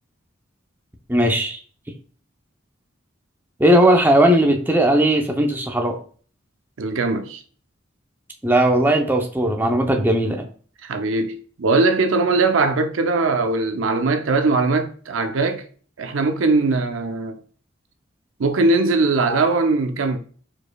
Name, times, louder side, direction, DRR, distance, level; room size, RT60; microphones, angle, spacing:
voice 1, 1.1-1.6 3.6-6.0 8.4-10.4, right 1 dB, 10° right, 0.6 m, -17 dB
voice 2, 6.8-7.4 10.8-15.7 16.0-17.4 18.4-20.2, right 3 dB, 80° right, 0.6 m, -20 dB
4.8 x 4.4 x 2.3 m
head